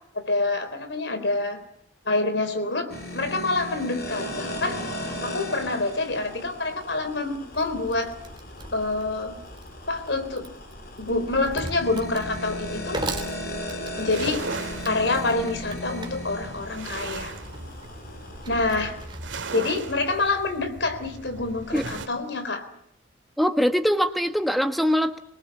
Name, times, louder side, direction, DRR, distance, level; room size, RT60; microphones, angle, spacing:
voice 1, 0.1-1.6 2.1-2.9 3.1-4.8 5.2-8.1 8.7-9.4 9.9-10.5 11.0-13.0 14.0-14.5 14.8-17.4 18.4-19.0 19.5-22.6, left 2 dB, 70° left, 9 dB, 3.8 m, -27 dB
sound 1, 2.9-19.1, left 1 dB, 50° left, 4.0 m, -37 dB
Wood, 7.5-19.5, right 2 dB, 25° right, 2.9 m, -39 dB
sound 2, 14.0-22.1, right 3 dB, 85° right, 2.0 m, -38 dB
voice 2, 23.4-25.2, equal, ahead, 7 dB, 1.4 m, -22 dB
25.0 x 20.5 x 8.5 m, 0.73 s
head